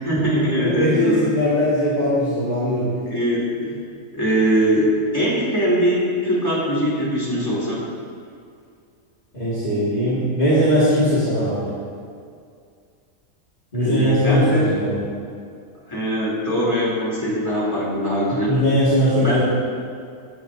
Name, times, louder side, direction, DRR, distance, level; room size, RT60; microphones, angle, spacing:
voice 1, 0.0-1.3 3.1-3.8 4.1-7.8 13.8-14.7 15.9-18.5 19.2-19.4, equal, 15° left, -8 dB, 3.3 m, -21 dB
voice 2, 0.6-2.9 9.3-11.7 13.7-15.0 18.3-19.4, equal, 30° left, -11 dB, 2.3 m, -20 dB
17.0 x 10.0 x 2.8 m, 2.3 s
omnidirectional pair, 1.4 m